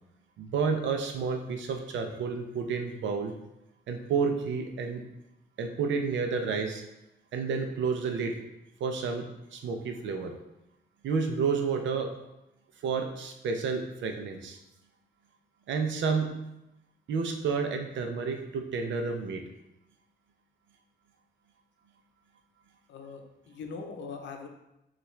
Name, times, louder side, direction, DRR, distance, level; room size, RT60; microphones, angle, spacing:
voice 1, 0.4-3.3 3.9-5.0 5.6-6.8 7.3-8.4 8.8-10.3 11.0-12.1 12.8-14.6 15.7-16.3 17.1-19.4, right 5 dB, 85° right, 4 dB, 0.6 m, -30 dB
voice 2, 22.9-24.5, left 4 dB, 80° left, 4 dB, 0.7 m, -41 dB
5.6 x 2.5 x 3.1 m, 0.89 s
wide cardioid pair, 150°, 19 cm